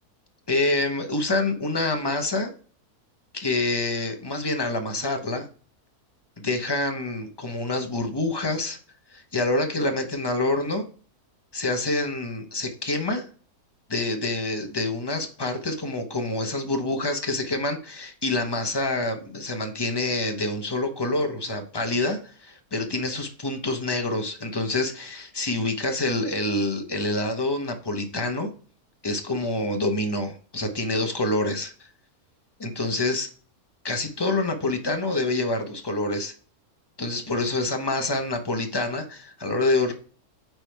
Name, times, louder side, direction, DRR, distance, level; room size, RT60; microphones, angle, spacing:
voice 1, 0.5-2.5 3.3-5.5 6.4-8.8 9.1-10.8 11.5-13.3 13.9-28.5 29.0-31.9 32.6-33.3 33.8-36.3 37.0-39.9, left 2 dB, 20° left, 5 dB, 0.7 m, -27 dB
9.1 x 3.5 x 4.5 m, 0.41 s
omnidirectional pair, 1.6 m